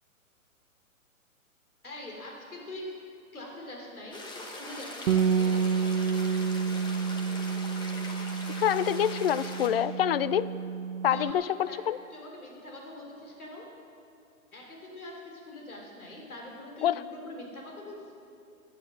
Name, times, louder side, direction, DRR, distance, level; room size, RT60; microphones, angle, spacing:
voice 1, 1.8-2.9 3.3-5.6 11.1-11.8 12.1-13.7 14.5-18.1, left 1 dB, 85° left, -1 dB, 3.7 m, -43 dB
sound 1, 4.1-9.7, left 1 dB, 10° left, 1.1 m, -41 dB
Bass guitar, 5.1-11.3, right 6 dB, 70° right, 0.7 m, -29 dB
voice 2, 8.5-10.5 11.0-12.0 16.8-17.0, left 10 dB, 45° left, 16 dB, 0.4 m, -26 dB
15.0 x 9.9 x 6.3 m, 2.6 s
hypercardioid pair, 135°, 42 cm